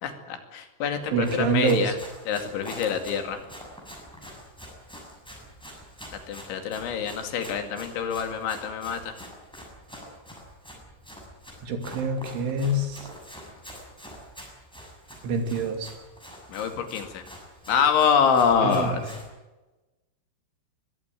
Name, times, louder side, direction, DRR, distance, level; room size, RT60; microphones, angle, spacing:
voice 1, 0.0-1.9 2.3-3.4 6.3-9.1 16.5-17.2 17.7-19.0, left 7 dB, 75° left, 7 dB, 4.6 m, -25 dB
Run, 1.1-19.3, equal, ahead, 6.2 m, -45 dB
voice 2, 1.1-2.0 11.6-13.1 15.2-15.9 18.6-19.1, right 3 dB, 80° right, 6 dB, 5.2 m, -26 dB
22.0 x 16.0 x 9.2 m, 1.1 s
omnidirectional pair, 5.5 m